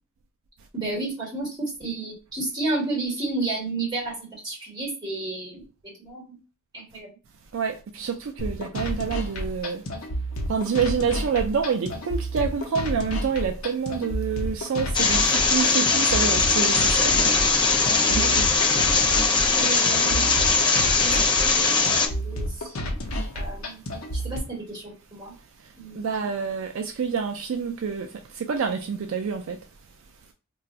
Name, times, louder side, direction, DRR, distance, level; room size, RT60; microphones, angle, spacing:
voice 1, 0.7-5.6 6.0-6.4 6.7-7.1 18.1-18.4 18.9-19.0 19.5-20.5 21.0-22.9 23.3-23.8 24.1-25.3 25.8-26.3, right 3 dB, 20° right, 1.4 m, -32 dB
voice 2, 7.5-9.8 10.5-17.3 18.0-18.5 26.0-28.1 28.3-29.6, right 6 dB, 60° right, 0.4 m, -27 dB
sound 1, 8.4-24.4, equal, 65° left, 0.7 m, -31 dB
sound 2, 14.9-22.1, left 4 dB, 20° left, 0.4 m, -20 dB
2.4 x 2.3 x 4.0 m
head